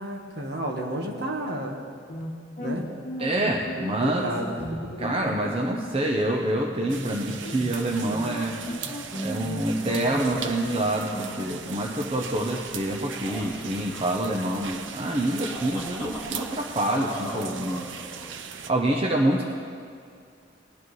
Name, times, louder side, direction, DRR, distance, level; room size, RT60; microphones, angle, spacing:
voice 1, 0.0-1.8 2.6-2.9 4.0-4.9, right 1 dB, 60° right, 2 dB, 1.4 m, -31 dB
sound 1, 2.1-11.8, equal, 50° left, 1.1 m, -36 dB
voice 2, 3.2-4.2 5.0-8.6 9.2-17.9 18.7-19.5, right 1 dB, 30° right, 0 dB, 0.7 m, -26 dB
sound 2, 6.9-18.7, right 7 dB, 85° right, 0.6 m, -39 dB
sound 3, 8.5-18.7, left 1 dB, 30° left, 2.6 m, -43 dB
19.0 x 10.5 x 3.2 m, 2.3 s
head